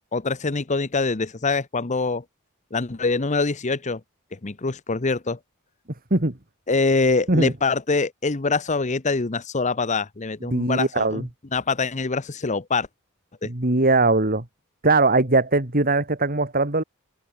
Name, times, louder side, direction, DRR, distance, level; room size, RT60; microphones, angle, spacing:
voice 1, 0.1-2.2 2.7-4.0 4.3-5.4 6.7-11.3 11.5-12.9 13.4-13.5, left 3 dB, 35° left, 0.9 m, -24 dB
voice 2, 10.5-11.2 13.4-14.4 14.8-16.8, right 2 dB, 40° right, 2.5 m, -20 dB
head